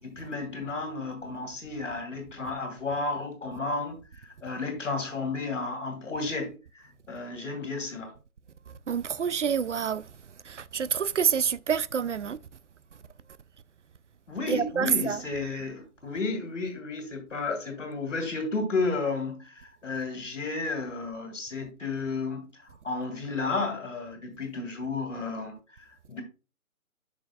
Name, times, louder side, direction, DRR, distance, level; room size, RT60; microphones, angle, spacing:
voice 1, 0.0-4.0 4.4-6.5 7.1-8.1 14.3-22.5 22.8-25.6 26.1-26.2, left 3 dB, 60° left, 2.4 m, -32 dB
voice 2, 8.7-10.1 10.4-12.4 14.5-15.2, right 7 dB, 60° right, 0.5 m, -27 dB
8.2 x 6.2 x 2.3 m
figure-of-eight pair, 135°, 42 cm